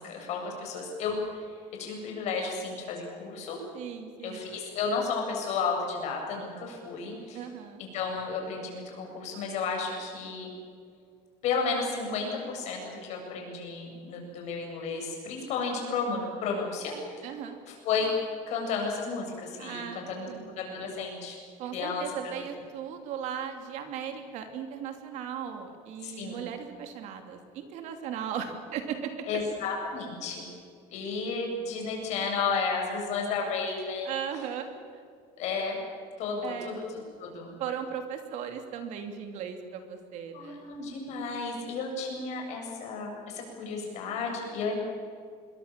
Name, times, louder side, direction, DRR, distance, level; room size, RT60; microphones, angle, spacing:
voice 1, 0.0-1.5 1.8-3.6 4.2-7.4 7.8-10.5 11.4-17.3 17.7-18.1 18.5-20.3 20.6-21.4 21.7-22.1 22.4-22.5 26.0-26.4 29.3-30.5 30.9-34.1 35.4-35.8 36.2-37.6 40.3-44.8, left 4 dB, 50° left, 1 dB, 7.4 m, -33 dB
voice 2, 3.7-4.4 7.3-7.8 17.2-17.6 19.6-20.6 21.6-29.2 34.0-34.7 36.4-36.8 37.6-40.6, right 8 dB, 50° right, 6 dB, 2.8 m, -37 dB
26.5 x 22.5 x 7.5 m, 2.2 s
cardioid pair, 170°, 15 cm